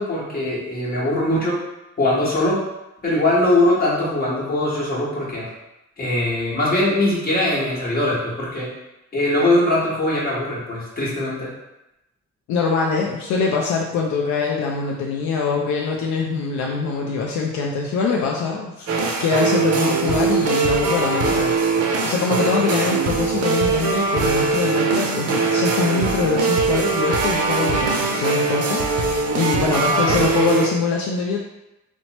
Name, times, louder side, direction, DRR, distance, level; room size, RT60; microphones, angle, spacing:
voice 1, 0.0-1.6 2.0-2.6 3.0-5.5 6.0-8.7 9.1-11.5 29.9-30.2, left 1 dB, 30° left, -6 dB, 1.1 m, -21 dB
voice 2, 12.5-18.9 19.2-21.6 22.1-31.4, left 4 dB, 70° left, -1 dB, 0.4 m, -23 dB
sound 1, 18.9-30.7, right 4 dB, 55° right, 0.5 m, -21 dB
2.9 x 2.1 x 2.8 m, 0.94 s
cardioid pair, 90°, 30 cm